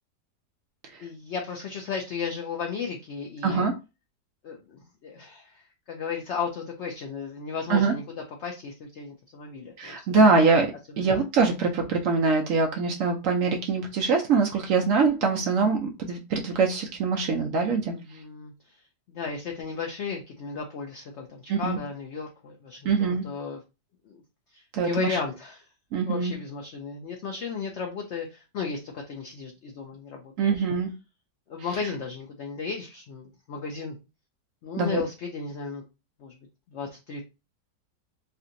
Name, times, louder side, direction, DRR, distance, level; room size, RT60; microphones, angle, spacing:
voice 1, 1.0-3.7 4.4-8.0 8.4-10.0 11.0-11.1 17.9-18.8 19.1-23.6 24.1-24.2 24.5-25.6 26.1-30.6 31.5-34.0 34.6-35.8 36.2-36.4 36.7-37.2, left 5 dB, 80° left, 2 dB, 0.6 m, -35 dB
voice 2, 3.4-3.7 7.7-7.9 9.8-10.7 11.0-17.9 21.5-21.8 22.8-23.2 24.7-25.2 25.9-26.3 30.4-30.9 31.8-31.9 34.8-35.0, right 4 dB, 70° right, 2 dB, 0.8 m, -23 dB
3.3 x 2.8 x 2.5 m, 0.28 s
omnidirectional pair, 1.8 m